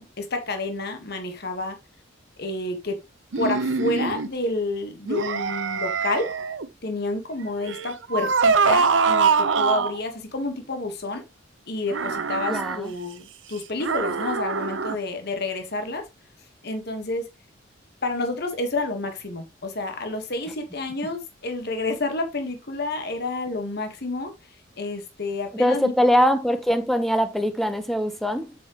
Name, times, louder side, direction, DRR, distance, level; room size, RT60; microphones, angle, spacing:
voice 1, 0.0-1.8 2.4-3.0 3.3-6.3 6.8-11.2 11.7-16.0 16.6-17.3 18.0-24.3 24.8-25.9, left 2 dB, 55° left, 1.6 m, -29 dB
sound 1, 3.3-4.3 5.1-6.7 7.6-10.0 11.9-12.8 13.8-15.0, right 5 dB, 75° right, 0.8 m, -23 dB
voice 2, 12.5-12.9 25.5-28.5, equal, ahead, 1.1 m, -22 dB
7.7 x 7.4 x 3.1 m
head